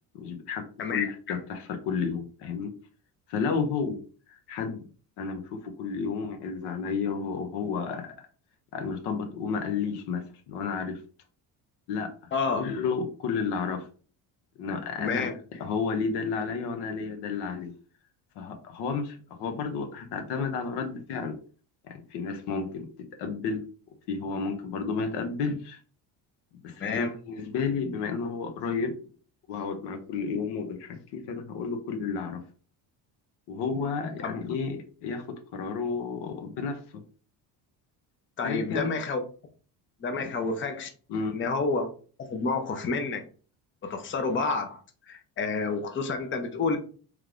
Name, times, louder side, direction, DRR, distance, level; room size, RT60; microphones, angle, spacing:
voice 1, 0.1-0.6 0.9-2.7 3.3-4.0 4.3-4.8 5.2-8.1 8.7-11.0 11.9-12.1 12.4-13.9 14.6-17.7 18.4-21.3 21.9-22.9 23.2-23.6 24.1-25.8 26.6-28.9 29.5-32.4 33.5-36.8 38.4-39.0 41.1-41.3, left 5 dB, 90° left, 6 dB, 1.0 m, -31 dB
voice 2, 0.8-1.4 12.3-12.6 15.0-15.3 26.8-27.1 34.2-34.3 38.4-39.2 40.0-40.9 41.3-41.9 42.3-43.2 43.8-44.8 45.1-46.8, left 4 dB, 30° left, 6 dB, 0.7 m, -29 dB
3.3 x 3.3 x 3.7 m, 0.40 s
cardioid pair, 135°, 40 cm